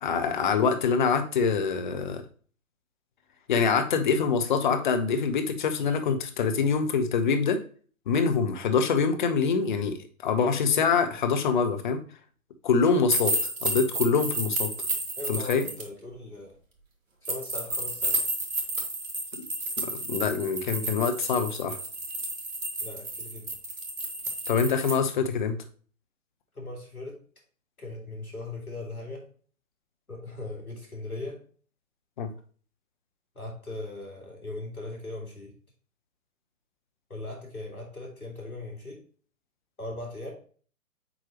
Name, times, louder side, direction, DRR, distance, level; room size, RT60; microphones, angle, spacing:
voice 1, 0.0-2.2 3.5-7.6 8.1-12.0 12.6-13.3 13.6-14.7 15.3-15.6 19.3-19.4 19.8-21.8 24.5-25.6 32.2-32.3, left 5 dB, 35° left, 7 dB, 0.9 m, -25 dB
sound 1, 13.1-15.8 17.2-24.9, right 2 dB, 60° right, 2.2 m, -31 dB
voice 2, 15.2-16.5 17.2-18.2 22.8-23.5 26.5-27.2 27.8-29.3 30.1-31.4 33.3-35.5 37.1-39.0 39.8-40.3, left 2 dB, 90° left, 0 dB, 3.0 m, -39 dB
7.8 x 4.5 x 3.0 m, 0.43 s
figure-of-eight pair, 135°, 42 cm